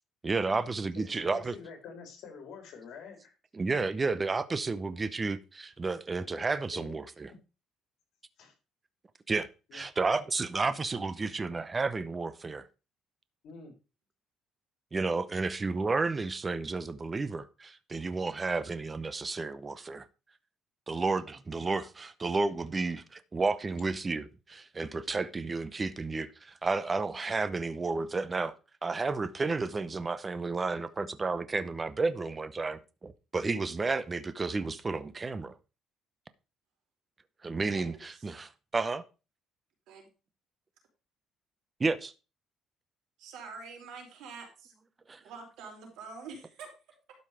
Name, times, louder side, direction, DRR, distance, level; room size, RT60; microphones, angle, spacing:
voice 1, 0.2-1.5 3.6-7.3 9.3-12.6 14.9-20.0 20.9-28.5 28.8-35.5 37.4-39.0 41.8-42.1 45.1-45.2, right 3 dB, 20° right, 0.7 m, -32 dB
voice 2, 0.9-3.3 6.7-6.9 8.4-8.5 9.7-9.8 13.4-13.7 21.3-21.4, left 5 dB, 70° left, 3.7 m, -47 dB
voice 3, 37.7-38.0 39.9-40.1 41.8-41.9 43.2-44.7 45.2-46.7, right 4 dB, 80° right, 4.6 m, -46 dB
12.0 x 5.5 x 5.0 m
cardioid pair, 130°, 0 cm